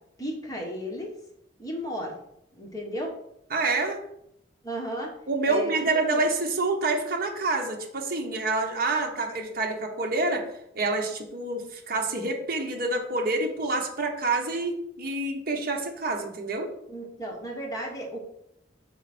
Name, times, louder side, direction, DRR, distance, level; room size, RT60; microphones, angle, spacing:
voice 1, 0.2-1.1 1.6-2.2 2.5-3.1 4.6-5.1 5.5-5.7 6.1-6.2 16.9-18.3, equal, 20° left, -1 dB, 1.3 m, -34 dB
voice 2, 3.5-4.0 5.3-10.4 10.7-16.7, right 3 dB, 50° right, 2 dB, 1.0 m, -27 dB
5.9 x 4.1 x 4.4 m, 0.75 s
head